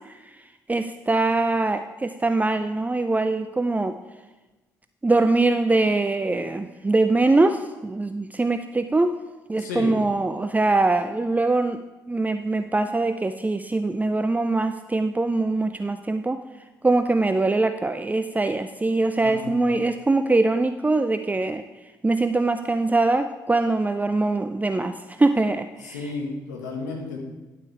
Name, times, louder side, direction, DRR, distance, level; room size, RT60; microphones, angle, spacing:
voice 1, 0.7-4.0 5.0-9.2 9.5-11.8 12.1-16.4 16.8-21.6 22.0-26.1, right 2 dB, 15° right, 9 dB, 0.5 m, -22 dB
voice 2, 9.5-10.0 19.2-19.6 25.8-27.2, left 3 dB, 85° left, 0 dB, 1.5 m, -32 dB
10.5 x 8.3 x 3.4 m, 1.2 s
hypercardioid pair, 45°, 9 cm